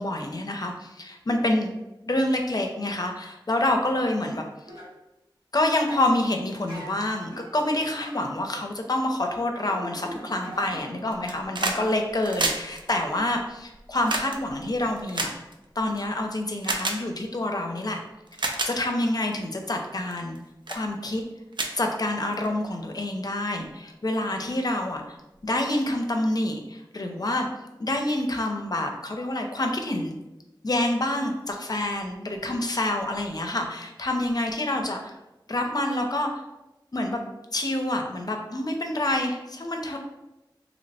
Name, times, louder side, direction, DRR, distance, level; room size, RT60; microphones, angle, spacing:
voice 1, 0.0-1.7 2.1-4.4 5.5-15.3 15.8-18.0 18.4-20.4 20.7-21.2 21.7-25.2 25.4-27.5 27.8-30.1 30.6-35.1 35.5-36.3 36.9-40.0, left 1 dB, 50° left, 3 dB, 0.5 m, -27 dB
sound 1, 4.7-4.9 5.8-6.1 6.7-11.2 11.5-11.8 14.2-14.3, equal, 80° right, 1.1 m, -43 dB
sound 2, 11.1-11.8 12.1-16.0 16.6-17.0 17.8-17.9 18.3-18.7 19.3-19.6 20.1-20.4 20.7-20.8 21.2-21.3 21.5-22.5 23.6-23.7, right 2 dB, 65° right, 0.4 m, -30 dB
2.9 x 2.1 x 4.0 m, 0.98 s
wide cardioid pair, 65°, 9 cm